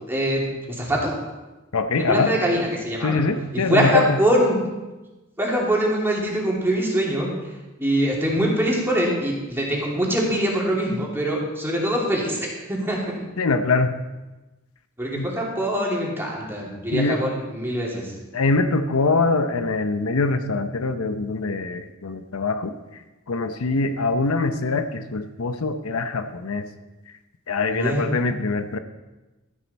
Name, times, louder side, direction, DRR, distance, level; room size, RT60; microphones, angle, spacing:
voice 1, 0.1-0.4 0.8-1.1 2.0-3.2 3.7-4.6 5.4-7.3 7.8-12.4 12.7-13.2 15.0-18.1 27.7-28.1, right 1 dB, 10° right, -3 dB, 2.6 m, -23 dB
voice 2, 1.7-2.3 3.0-4.2 13.4-13.9 15.2-15.3 16.9-17.2 18.3-22.7 23.3-26.7 27.5-28.8, left 3 dB, 90° left, 9 dB, 0.7 m, -23 dB
12.5 x 10.5 x 4.2 m, 1.1 s
head